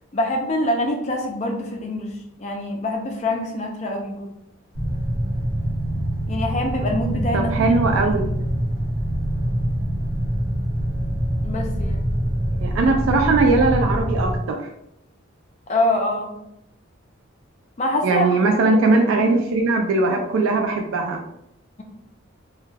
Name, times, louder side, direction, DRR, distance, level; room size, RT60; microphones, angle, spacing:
voice 1, 0.1-4.3 6.3-7.8 8.1-8.2 11.4-12.0 15.7-16.3 17.8-18.3 18.6-18.8, left 1 dB, 35° left, 2 dB, 0.4 m, -25 dB
sound 1, 4.7-14.4, equal, 25° right, 1.0 m, -24 dB
voice 2, 7.3-8.3 12.6-14.6 18.0-21.2, right 3 dB, 80° right, 3 dB, 0.3 m, -19 dB
2.3 x 2.2 x 3.1 m, 0.82 s
head